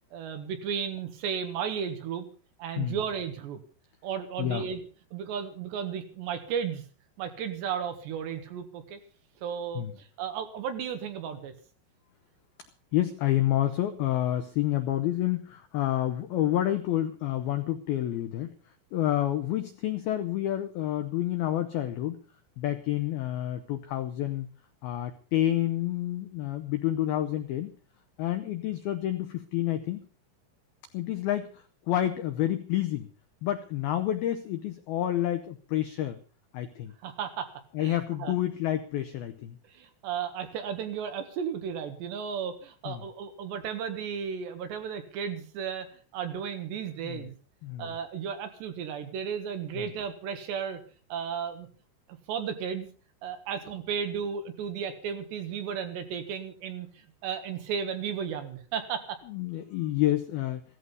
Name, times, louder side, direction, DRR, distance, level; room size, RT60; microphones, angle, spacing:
voice 1, 0.1-2.3 2.6-3.6 4.0-4.8 5.1-6.8 7.2-9.0 9.4-11.5 37.0-37.5 37.8-38.4 39.7-45.9 46.1-47.4 47.8-50.8 51.1-51.7 52.3-52.9 53.2-56.9 57.2-59.2, right 7 dB, 65° right, 7 dB, 3.5 m, -34 dB
voice 2, 12.9-18.5 18.9-22.2 22.6-24.5 24.8-27.7 28.2-30.0 30.9-31.5 31.9-33.1 33.4-36.2 36.5-36.9 37.7-39.6 42.9-43.0 47.0-47.3 47.6-47.9 59.3-60.6, left 13 dB, 85° left, 8 dB, 2.1 m, -29 dB
16.0 x 14.0 x 5.4 m, 0.38 s
omnidirectional pair, 5.8 m